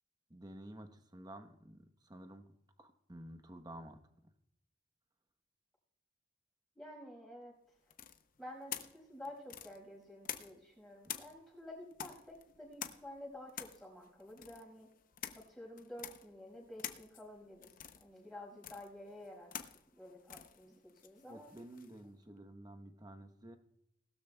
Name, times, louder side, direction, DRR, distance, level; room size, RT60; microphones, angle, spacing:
voice 1, 0.3-2.5 2.8-4.0 21.3-23.6, right 1 dB, 20° right, 8 dB, 1.0 m, -51 dB
voice 2, 6.8-7.8 8.4-14.9 15.5-19.5 19.9-21.5, left 1 dB, ahead, -2 dB, 5.4 m, -51 dB
sound 1, 7.9-10.7 11.0-22.0, left 9 dB, 45° left, 0.7 m, -48 dB
19.5 x 12.5 x 2.3 m, 0.79 s
head